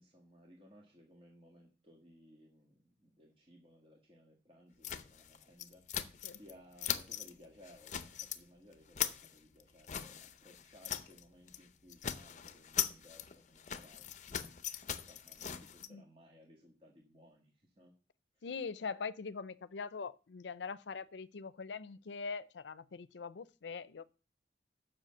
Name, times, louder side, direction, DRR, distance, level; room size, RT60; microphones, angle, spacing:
voice 1, 0.0-14.5 14.9-17.9 18.4-18.5, equal, 30° right, 1.6 m, -61 dB
sound 1, 4.8-6.5 6.8-7.3 7.6-8.4 8.7-11.2 11.5-11.6 11.9-15.9, left 9 dB, 45° left, 0.6 m, -40 dB
voice 2, 18.4-24.0, left 5 dB, 85° left, 0.5 m, -42 dB
7.6 x 6.1 x 7.7 m
head